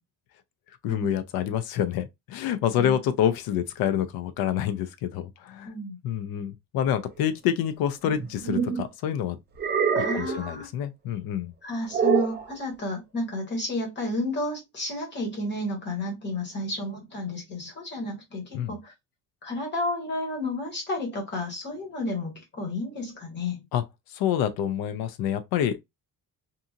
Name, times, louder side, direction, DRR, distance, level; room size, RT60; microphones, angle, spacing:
voice 1, 0.8-5.7 6.0-9.4 10.0-11.5 18.5-18.8 23.7-23.8 24.1-25.8, left 10 dB, 85° left, 0.6 m, -27 dB
voice 2, 5.6-6.0 9.9-10.7 11.6-18.9 19.4-23.6, left 2 dB, 30° left, 1.5 m, -31 dB
sound 1, 8.0-8.9 9.6-10.4 11.9-12.4, right 7 dB, 30° right, 0.5 m, -25 dB
2.7 x 2.7 x 2.4 m
cardioid pair, 170°, 35 cm